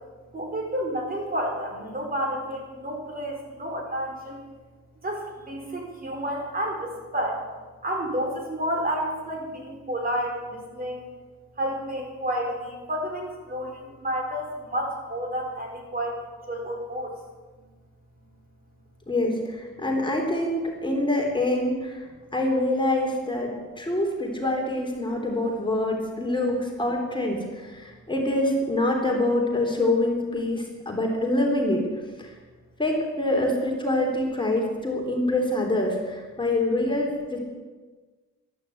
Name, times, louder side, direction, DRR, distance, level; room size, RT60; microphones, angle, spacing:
voice 1, 0.3-4.4 5.0-7.4 7.8-11.1 11.6-16.2 16.5-17.1, equal, 30° right, 1 dB, 4.0 m, -30 dB
voice 2, 19.1-22.1 22.3-31.8 32.2-32.3 32.8-37.4, left 1 dB, 15° left, 0 dB, 3.3 m, -25 dB
12.5 x 11.5 x 7.8 m, 1.4 s
cardioid pair, 90°, 30 cm